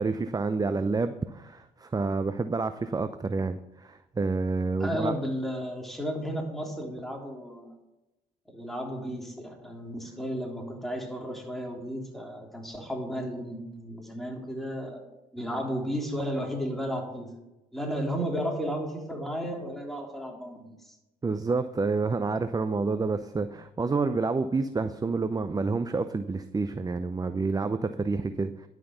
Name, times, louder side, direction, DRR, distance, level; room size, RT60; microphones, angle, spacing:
voice 1, 0.0-5.2 21.2-28.7, right 4 dB, 20° right, 11 dB, 0.6 m, -28 dB
voice 2, 4.8-7.7 8.5-15.0 15.3-17.3 17.7-20.9, equal, ahead, 0 dB, 3.4 m, -33 dB
11.0 x 5.9 x 6.9 m, 0.98 s
hypercardioid pair, 60°, 19 cm